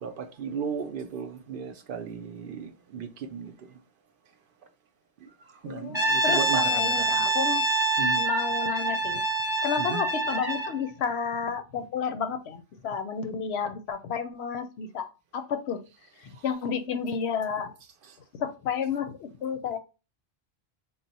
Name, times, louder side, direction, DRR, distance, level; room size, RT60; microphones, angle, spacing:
voice 1, 0.0-3.5 5.6-7.3 8.0-8.2 9.8-10.0, right 6 dB, 60° right, 0.7 m, -35 dB
voice 2, 5.6-7.7 8.2-9.2 9.6-15.1 15.3-15.8 16.4-17.7 18.4-19.8, left 6 dB, 80° left, 0.9 m, -31 dB
Brass instrument, 5.9-10.8, right 2 dB, 25° left, 0.7 m, -26 dB
3.9 x 2.1 x 4.0 m
omnidirectional pair, 1.1 m